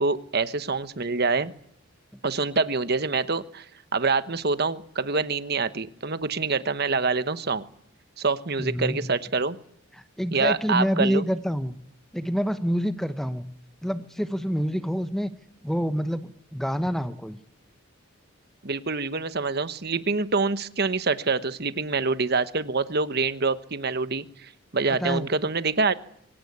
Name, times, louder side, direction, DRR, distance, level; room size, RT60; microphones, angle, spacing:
voice 1, 0.0-1.5 2.2-3.7 3.9-7.6 8.2-9.6 10.3-11.2 18.6-26.0, right 4 dB, 50° right, 12 dB, 1.1 m, -26 dB
voice 2, 8.6-9.0 9.9-11.8 12.1-13.5 13.8-15.3 15.6-17.4 24.9-25.3, equal, ahead, 10 dB, 0.9 m, -27 dB
24.5 x 18.0 x 9.6 m, 0.69 s
head